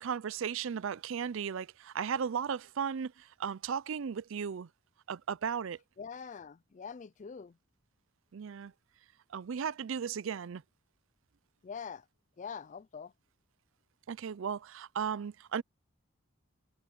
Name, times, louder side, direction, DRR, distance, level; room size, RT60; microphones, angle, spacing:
voice 1, 0.0-4.7 5.1-5.8 8.3-8.7 9.3-10.6 14.1-15.6, right 7 dB, 60° right, 0.4 m, -36 dB
voice 2, 6.0-7.6 11.6-12.1 12.4-13.1, left 6 dB, 35° left, 0.3 m, -44 dB
head